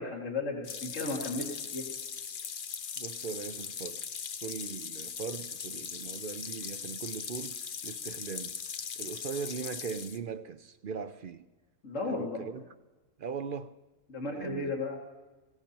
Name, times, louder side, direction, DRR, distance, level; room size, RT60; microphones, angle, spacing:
voice 1, 0.0-1.8 11.8-12.4 14.1-15.0, left 3 dB, 70° left, 2.4 m, -34 dB
sound 1, 0.6-10.2, left 7 dB, 50° left, 0.7 m, -39 dB
voice 2, 3.0-4.1 4.4-8.6 9.0-11.5 12.1-12.6 13.2-13.7 14.3-14.7, right 6 dB, 55° right, 0.7 m, -39 dB
22.0 x 17.0 x 2.9 m
omnidirectional pair, 1.3 m